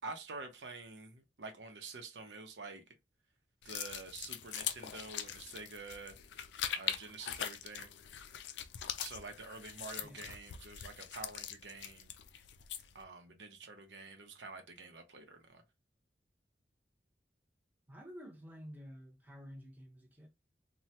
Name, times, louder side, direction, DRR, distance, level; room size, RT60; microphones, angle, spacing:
voice 1, 0.0-2.8 3.6-6.2 6.8-7.9 9.0-12.1 12.9-15.6, right 3 dB, 80° right, 0.7 m, -48 dB
sound 1, 3.6-13.0, left 10 dB, 80° left, 0.4 m, -42 dB
voice 2, 17.9-20.3, equal, 10° right, 0.7 m, -51 dB
3.1 x 2.2 x 2.8 m
head